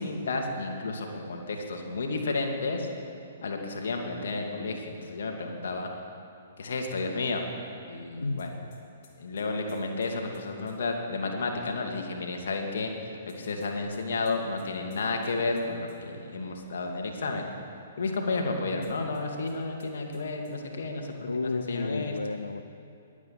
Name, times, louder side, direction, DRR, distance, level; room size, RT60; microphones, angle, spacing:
voice 1, 0.0-2.9 3.4-5.9 6.6-7.4 7.9-8.5 9.2-12.9 13.3-17.4 18.0-22.1, left 3 dB, 60° left, 2 dB, 2.3 m, -32 dB
voice 2, 8.2-8.7 21.3-22.6, left 3 dB, 75° left, 8 dB, 0.6 m, -32 dB
sound 1, 8.4-10.8 13.3-15.6 15.9-16.0 18.8-19.5 19.8-19.9 20.1-20.5, left 3 dB, 40° left, 3.1 m, -54 dB
21.5 x 8.5 x 7.3 m, 2.6 s
figure-of-eight pair, 120°, 0 cm